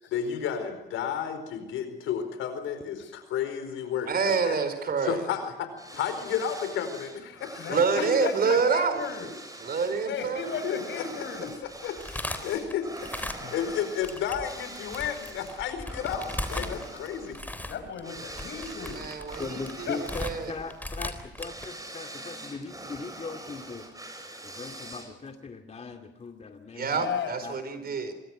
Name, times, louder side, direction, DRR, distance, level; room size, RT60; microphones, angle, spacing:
voice 1, 0.1-4.6 5.0-5.7 5.9-8.0 10.6-11.0 11.8-12.9 13.3-17.4, left 8 dB, 90° left, 9 dB, 4.7 m, -32 dB
voice 2, 4.1-5.2 7.7-9.0 9.6-10.4 18.9-19.4 19.8-20.5 26.7-28.1, right 5 dB, 50° right, 10 dB, 4.9 m, -27 dB
sound 1, 5.8-25.3, right 1 dB, 15° right, 7.1 m, -44 dB
voice 3, 5.9-6.2 7.6-9.3 10.0-11.6 13.2-13.6 16.5-16.9 17.7-19.2 19.9-20.0 26.8-27.4, left 6 dB, 70° left, 8 dB, 6.0 m, -35 dB
sound 2, 11.4-13.7 14.0-21.7, left 1 dB, 10° left, 3.7 m, -38 dB
voice 4, 19.4-23.9 24.4-27.0 27.4-27.5, left 4 dB, 35° left, 5 dB, 2.3 m, -39 dB
26.5 x 23.5 x 6.3 m, 1.0 s
cardioid pair, 90°, 20 cm